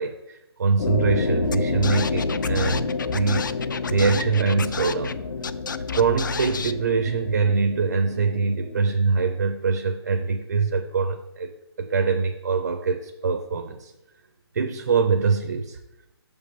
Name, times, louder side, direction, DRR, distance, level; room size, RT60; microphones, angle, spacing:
voice 1, 0.0-5.2 5.9-13.9 14.5-15.8, right 5 dB, 45° right, 6 dB, 0.7 m, -24 dB
sound 1, 0.8-8.9, left 3 dB, 75° left, 0.9 m, -29 dB
Scratching (performance technique), 1.5-1.6 1.8-5.1 5.4-6.7, left 6 dB, 50° left, 0.4 m, -32 dB
6.7 x 5.3 x 5.0 m, 0.92 s
hypercardioid pair, 170°, 14 cm